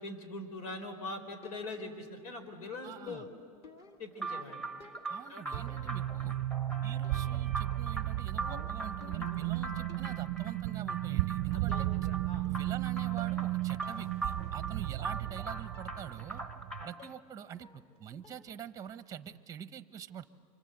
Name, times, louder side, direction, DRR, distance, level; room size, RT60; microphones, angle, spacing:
voice 1, 0.0-3.3 4.0-4.6 5.3-5.4 6.7-6.8 11.5-12.5 16.8-16.9, left 2 dB, 85° left, 9 dB, 4.2 m, -43 dB
sound 1, 1.4-2.0 3.1-5.2 5.5-6.2 7.0-7.4 7.7-9.5 9.9-10.3 11.2-11.3 11.7-12.2 12.4-12.8 13.2-13.5 13.8-14.1 14.5-14.6 15.7-16.0 16.4-16.7 17.0-17.3 17.6-18.0 18.2-18.6, left 4 dB, 35° left, 2.4 m, -55 dB
voice 2, 2.8-3.3 5.1-6.4 6.8-11.9 12.5-16.4 16.8-20.2, right 9 dB, 20° right, 12 dB, 0.8 m, -45 dB
sound 2, 4.2-17.1, right 3 dB, 5° left, 1.1 m, -42 dB
sound 3, 5.5-16.8, right 16 dB, 50° right, 0.6 m, -34 dB
27.0 x 25.5 x 7.9 m, 2.2 s
supercardioid pair, 135°, 19 cm